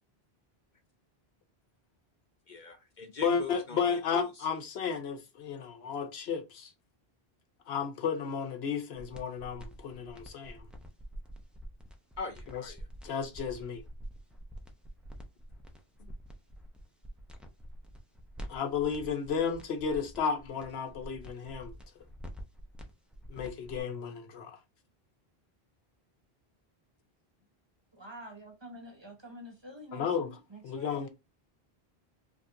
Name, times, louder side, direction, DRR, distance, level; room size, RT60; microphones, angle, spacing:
voice 1, 2.5-4.5 12.2-12.9, left 4 dB, 55° left, 0.6 m, -42 dB
voice 2, 3.2-6.7 7.7-10.6 12.5-12.6 13.0-13.8 18.5-21.7 23.3-24.6 29.9-30.3 30.6-31.1, left 6 dB, 85° left, 1.0 m, -33 dB
sound 1, 8.9-23.8, right 1 dB, ahead, 0.4 m, -47 dB
voice 3, 27.9-31.1, equal, 30° right, 0.9 m, -48 dB
5.0 x 2.4 x 2.6 m
omnidirectional pair, 1.0 m